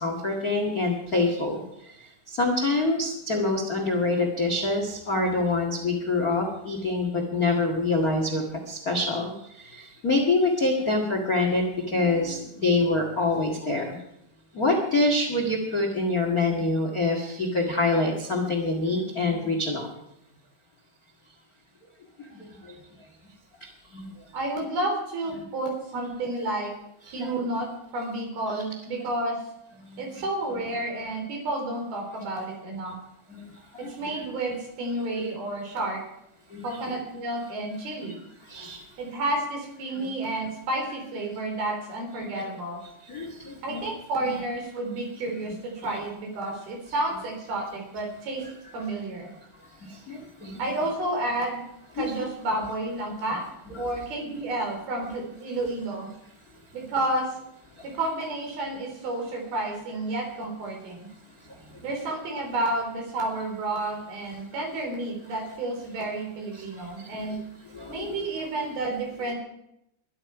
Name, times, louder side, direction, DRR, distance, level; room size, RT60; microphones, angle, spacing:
voice 1, 0.0-14.0 14.5-19.9 22.2-22.8 23.6-24.1 27.2-27.4 29.8-30.0 33.3-33.9 36.5-36.8 38.4-38.8 40.0-40.1 43.1-43.9 44.2-44.4 49.8-50.6 52.0-52.1 53.7-53.8 61.5-61.8 66.5-67.1 67.7-68.2, left 2 dB, 50° left, 3 dB, 1.0 m, -26 dB
voice 2, 24.3-26.7 27.1-27.7 27.9-29.4 30.0-32.9 33.8-36.0 36.6-38.2 39.0-42.8 43.6-48.4 48.7-49.3 50.6-51.6 51.9-53.4 53.8-56.1 56.7-57.3 57.8-61.1 61.8-67.4 67.9-69.4, right 2 dB, 60° right, 1 dB, 6.1 m, -30 dB
22.0 x 11.5 x 4.9 m, 0.82 s
omnidirectional pair, 5.1 m